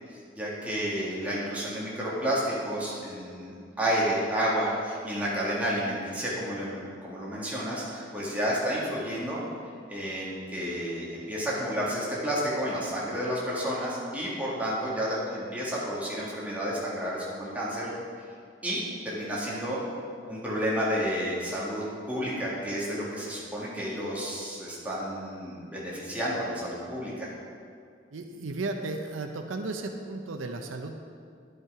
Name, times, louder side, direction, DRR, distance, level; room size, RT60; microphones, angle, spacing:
voice 1, 0.1-9.4 9.9-17.9 18.6-19.8 20.3-27.3, equal, 10° right, -7 dB, 1.9 m, -31 dB
voice 2, 28.1-31.0, right 3 dB, 90° right, 5 dB, 0.7 m, -34 dB
10.5 x 5.6 x 4.8 m, 2.3 s
head